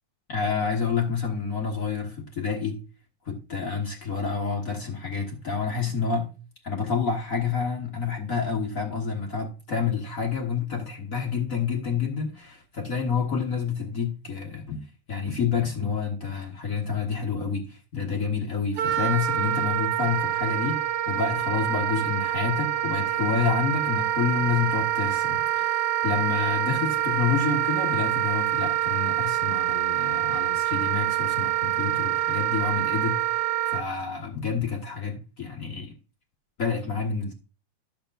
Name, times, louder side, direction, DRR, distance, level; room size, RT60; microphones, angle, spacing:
voice 1, 0.3-2.8 3.2-6.3 6.6-35.9 36.6-37.3, left 6 dB, 45° left, 1.1 m, -29 dB
Wind instrument woodwind instrument, 18.8-33.8, right 13 dB, 70° right, 1.6 m, -26 dB
11.5 x 6.9 x 2.5 m
omnidirectional pair, 3.4 m